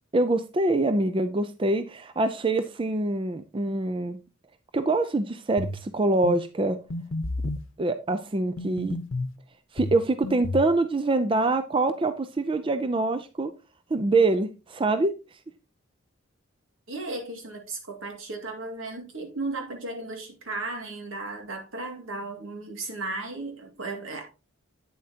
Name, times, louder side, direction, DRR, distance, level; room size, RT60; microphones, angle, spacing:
voice 1, 0.1-4.2 4.7-6.8 7.8-9.0 9.7-13.5 13.9-15.1, right 2 dB, 25° right, 0.4 m, -25 dB
sound 1, 5.6-5.8 6.2-6.4 6.9-7.7 8.6-9.3 9.8-10.7, left 2 dB, 75° left, 0.8 m, -31 dB
voice 2, 16.9-24.2, right 2 dB, 80° right, 2.0 m, -35 dB
8.7 x 7.4 x 2.8 m
head